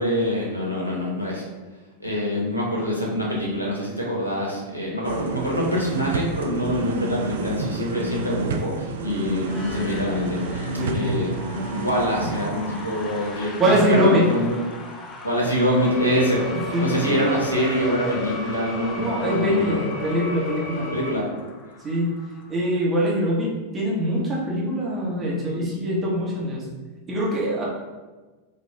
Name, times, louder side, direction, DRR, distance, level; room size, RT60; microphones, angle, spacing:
voice 1, 0.0-1.4 2.0-11.3 11.7-14.6 15.2-16.4 16.8-19.8 20.9-21.2, equal, 90° left, -4 dB, 0.8 m, -25 dB
sound 1, 5.0-14.9 15.2-15.3, right 3 dB, 60° right, 0.4 m, -31 dB
sound 2, 9.4-23.1, left 3 dB, 20° left, 0.4 m, -40 dB
voice 2, 10.7-11.2 13.6-14.3 16.5-17.2 19.0-20.9 21.8-22.1 22.5-26.7 27.1-27.7, equal, 20° right, -5 dB, 0.9 m, -23 dB
sound 3, 15.8-21.1, left 2 dB, 55° left, 1.2 m, -33 dB
3.4 x 2.3 x 3.2 m, 1.2 s
figure-of-eight pair, 90°, 0 cm